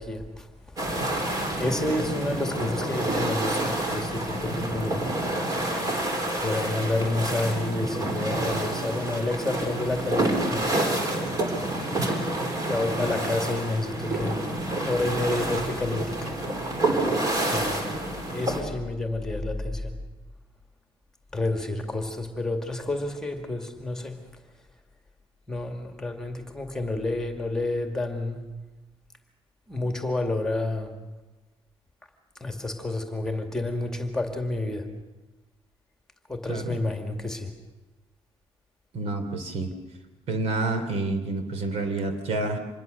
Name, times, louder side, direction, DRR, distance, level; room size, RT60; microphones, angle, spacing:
voice 1, 0.0-5.1 6.2-10.7 12.6-16.3 17.5-17.9 18.3-20.0 21.3-24.3 25.5-28.4 29.7-31.0 32.4-34.9 36.3-37.6, left 2 dB, 5° left, 4 dB, 2.2 m, -30 dB
sound 1, 0.8-18.6, right 1 dB, 35° right, 3.6 m, -28 dB
voice 2, 38.9-39.7 40.3-42.6, right 2 dB, 70° right, 8 dB, 3.4 m, -28 dB
26.0 x 21.0 x 6.8 m, 1.1 s
cardioid pair, 170°, 11 cm